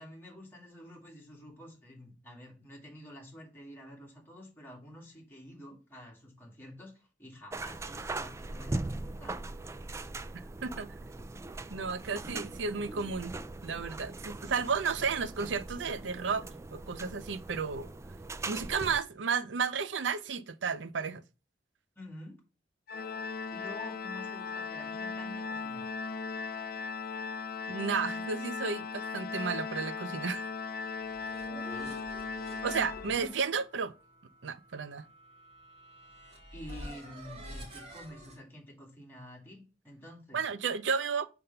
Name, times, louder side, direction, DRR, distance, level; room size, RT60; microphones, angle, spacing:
voice 1, 0.0-9.4 22.0-22.4 23.5-25.9 31.7-32.0 36.5-40.4, left 1 dB, 10° left, 2.5 m, -49 dB
sound 1, 7.5-19.0, right 2 dB, 15° right, 0.3 m, -40 dB
voice 2, 10.3-10.9 11.7-13.3 13.6-16.4 16.7-17.9 18.5-21.2 27.7-30.5 32.6-33.9 34.4-35.0 40.3-41.3, right 5 dB, 85° right, 0.6 m, -33 dB
Organ, 22.9-33.6, left 4 dB, 55° left, 0.4 m, -38 dB
sound 2, 30.8-38.4, equal, 35° right, 2.6 m, -48 dB
6.6 x 3.5 x 5.7 m
head